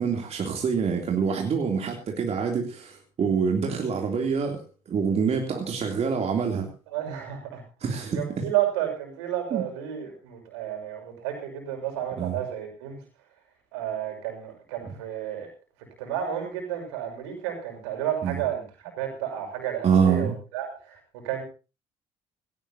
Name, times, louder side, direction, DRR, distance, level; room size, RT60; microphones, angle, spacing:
voice 1, 0.0-6.7 7.8-8.4 9.5-9.6 12.2-12.4 14.8-14.9 18.2-18.4 19.8-20.4, right 6 dB, 45° right, 2 dB, 3.2 m, -26 dB
voice 2, 6.9-7.6 7.9-13.0 13.7-15.5 16.0-21.4, right 10 dB, 75° right, 3 dB, 6.3 m, -31 dB
18.5 x 17.5 x 2.9 m, 0.32 s
hypercardioid pair, 55°, 15 cm